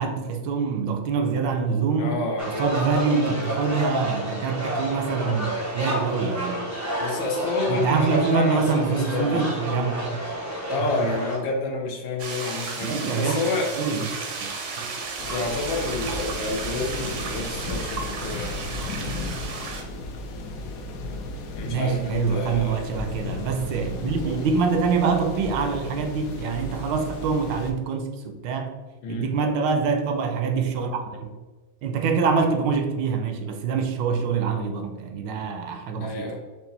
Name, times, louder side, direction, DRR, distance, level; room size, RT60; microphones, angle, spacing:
voice 1, 0.0-6.7 7.7-10.2 10.8-10.9 12.8-13.4 13.7-14.5 14.8-14.9 21.6-28.7 29.1-31.3 31.8-36.3, right 5 dB, 80° right, 6 dB, 1.3 m, -25 dB
voice 2, 2.0-2.5 7.0-9.5 10.7-13.7 15.0-18.6 21.6-22.9 29.0-29.3 36.0-36.4, left 3 dB, 85° left, 1 dB, 1.6 m, -29 dB
sound 1, 2.4-11.4, right 1 dB, 20° right, 0.4 m, -30 dB
sound 2, 12.2-19.8, right 4 dB, 60° right, 0.8 m, -33 dB
sound 3, 15.2-27.7, left 2 dB, 65° left, 0.9 m, -35 dB
5.5 x 2.4 x 3.9 m, 1.3 s
omnidirectional pair, 2.0 m